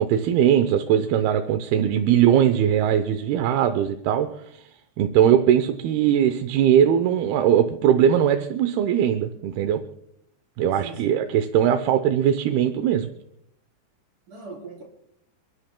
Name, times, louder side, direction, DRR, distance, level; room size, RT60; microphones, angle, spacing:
voice 1, 0.0-4.6 5.0-9.8 10.6-13.1, right 9 dB, 75° right, 2.5 m, -20 dB
voice 2, 10.8-11.2 14.3-14.8, right 4 dB, 50° right, 5.2 m, -40 dB
29.0 x 13.0 x 2.2 m
omnidirectional pair, 4.9 m